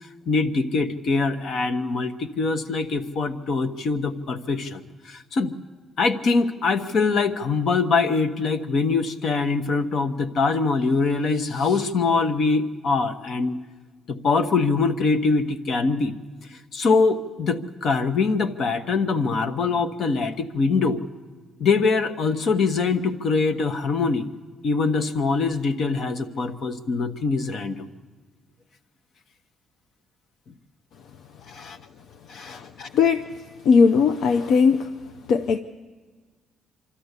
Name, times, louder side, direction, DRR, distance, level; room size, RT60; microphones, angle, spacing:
voice 1, 0.3-5.5 6.0-13.6 14.1-16.1 16.7-21.0 21.6-24.3 24.6-27.9 31.5-31.8 32.3-32.9, left 4 dB, 60° left, 9 dB, 1.1 m, -23 dB
voice 2, 32.9-33.3 33.6-35.0 35.3-35.6, left 5 dB, 80° left, 8 dB, 0.6 m, -18 dB
25.0 x 13.0 x 8.2 m, 1.4 s
cardioid pair, 90°, 0 cm